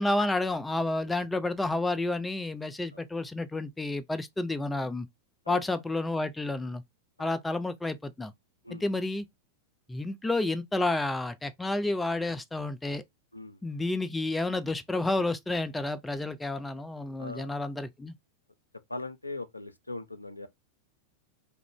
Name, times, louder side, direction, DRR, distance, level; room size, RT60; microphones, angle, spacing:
voice 1, 0.0-5.1 5.5-6.8 7.2-8.3 8.7-9.3 9.9-13.0 13.6-18.1, left 2 dB, 10° left, 0.3 m, -30 dB
voice 2, 17.2-17.6 18.9-20.5, left 2 dB, 85° left, 0.3 m, -40 dB
2.4 x 2.1 x 3.3 m
figure-of-eight pair, 90°, 0 cm